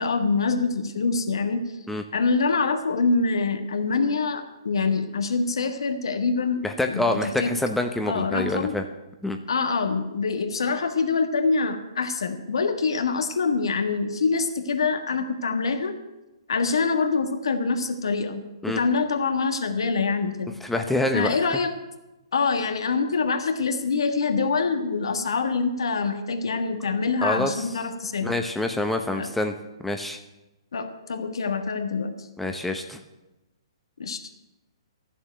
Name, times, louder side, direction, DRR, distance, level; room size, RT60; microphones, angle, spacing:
voice 1, 0.0-1.6 2.1-6.6 6.9-7.5 8.0-8.7 9.5-15.9 16.5-20.5 21.1-21.7 22.3-28.3 29.1-29.3 30.7-32.3 34.0-34.2, left 4 dB, 70° left, 6 dB, 1.5 m, -25 dB
voice 2, 6.6-8.8 9.2-9.4 18.6-18.8 20.6-21.6 27.2-27.7 28.2-29.5 29.8-30.2 32.4-33.0, left 2 dB, 5° left, 5 dB, 0.8 m, -26 dB
13.0 x 7.3 x 9.2 m, 1.0 s
figure-of-eight pair, 130°, 3 cm